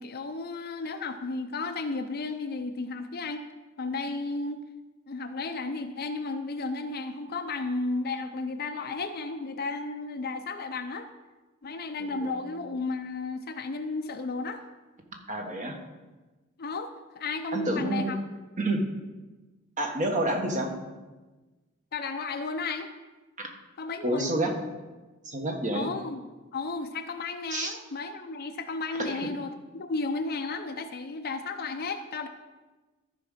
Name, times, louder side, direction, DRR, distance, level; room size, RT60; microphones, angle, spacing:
voice 1, 0.0-3.4 3.8-4.6 5.1-11.1 11.6-14.6 16.6-18.2 21.9-22.9 23.8-24.3 25.7-32.3, left 3 dB, 45° left, 6 dB, 0.6 m, -33 dB
voice 2, 12.0-12.3 15.3-15.8 17.5-18.1 18.6-18.8 19.8-20.7 23.4-23.5 24.0-24.5 25.2-25.9 27.5-27.8 29.0-29.3, right 1 dB, 35° right, 3 dB, 1.4 m, -29 dB
13.5 x 4.9 x 5.7 m, 1.2 s
head